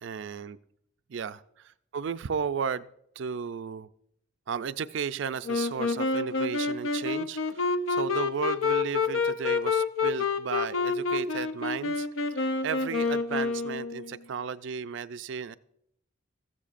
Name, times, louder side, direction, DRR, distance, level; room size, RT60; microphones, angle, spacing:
voice 1, 0.0-0.6 1.1-2.9 3.2-3.9 4.5-12.1 12.4-15.6, right 6 dB, 65° right, 15 dB, 0.4 m, -34 dB
Wind instrument woodwind instrument, 5.4-14.2, left 4 dB, 80° left, 0.6 m, -28 dB
15.0 x 13.5 x 2.5 m, 0.73 s
head